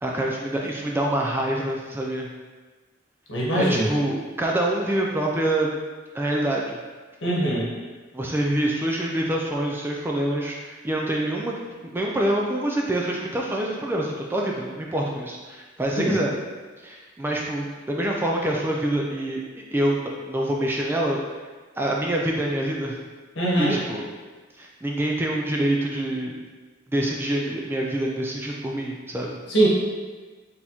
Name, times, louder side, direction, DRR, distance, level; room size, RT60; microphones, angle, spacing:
voice 1, 0.0-2.3 3.5-5.7 6.1-6.8 7.2-7.4 8.1-11.5 11.9-16.3 16.8-19.4 19.7-21.2 21.8-23.0 23.6-24.0 24.6-26.3 26.9-29.4, right 1 dB, 10° right, -1 dB, 0.3 m, -26 dB
voice 2, 3.3-3.9 7.2-7.7 16.0-16.2 23.4-23.8 29.5-29.7, right 1 dB, 65° left, -5 dB, 1.2 m, -22 dB
4.2 x 3.5 x 2.9 m, 1.3 s
head